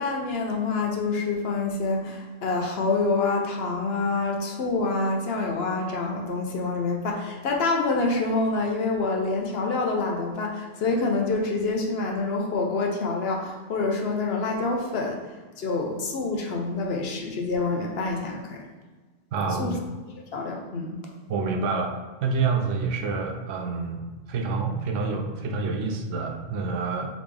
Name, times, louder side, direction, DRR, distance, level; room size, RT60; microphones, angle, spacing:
voice 1, 0.0-15.3 15.6-18.7 19.6-19.7 20.3-21.0, left 3 dB, 60° left, 1 dB, 0.8 m, -27 dB
voice 2, 19.3-19.8 21.3-27.1, right 4 dB, 80° right, 3 dB, 0.9 m, -28 dB
3.9 x 3.4 x 3.3 m, 1.3 s
omnidirectional pair, 1.3 m